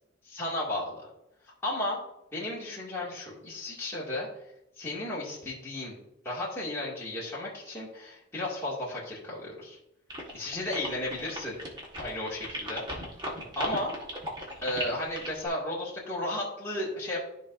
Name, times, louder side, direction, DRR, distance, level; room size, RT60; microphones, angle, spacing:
voice 1, 0.2-1.1 1.6-2.0 2.3-4.3 4.8-6.0 6.2-9.8 10.3-11.6 12.0-12.8 13.6-13.9 14.6-17.2, left 1 dB, 10° left, -8 dB, 2.2 m, -34 dB
sound 1, 10.1-15.5, equal, 20° right, 1.5 m, -37 dB
13.5 x 4.6 x 2.6 m, 0.85 s
head